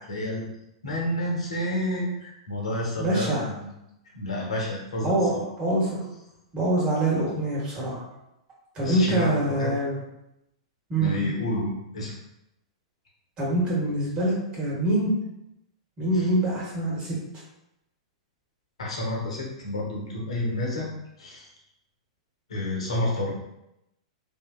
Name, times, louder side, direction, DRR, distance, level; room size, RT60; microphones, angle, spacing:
voice 1, 0.1-0.4 0.8-3.7 4.1-5.4 8.8-9.7 11.0-12.1 16.1-16.3 18.8-20.9 21.2-21.5 22.5-23.3, left 1 dB, 80° left, -2 dB, 0.9 m, -30 dB
voice 2, 3.0-3.5 5.0-5.3 5.6-6.1 6.5-8.0 8.7-9.9 10.9-11.2 13.4-15.1 16.0-17.1, right 1 dB, 30° right, -6 dB, 1.4 m, -25 dB
2.9 x 2.7 x 2.3 m, 0.85 s
hypercardioid pair, 115°, 3 cm